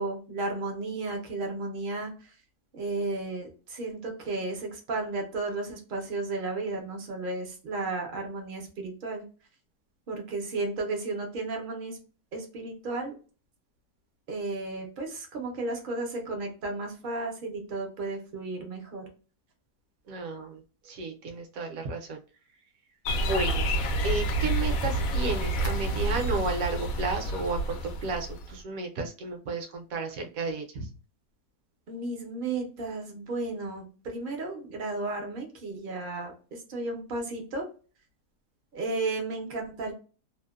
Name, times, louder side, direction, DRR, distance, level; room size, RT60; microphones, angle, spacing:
voice 1, 0.0-2.3 2.7-9.3 10.1-12.0 12.3-13.1 14.3-19.0 31.9-37.7 38.7-39.9, right 3 dB, 50° right, 2 dB, 0.6 m, -33 dB
voice 2, 20.1-22.2 23.2-23.7 24.0-30.9, right 3 dB, 65° right, 4 dB, 1.0 m, -33 dB
sound 1, 23.0-28.6, right 1 dB, 70° left, 0.9 m, -29 dB
2.8 x 2.1 x 2.3 m, 0.36 s
omnidirectional pair, 1.7 m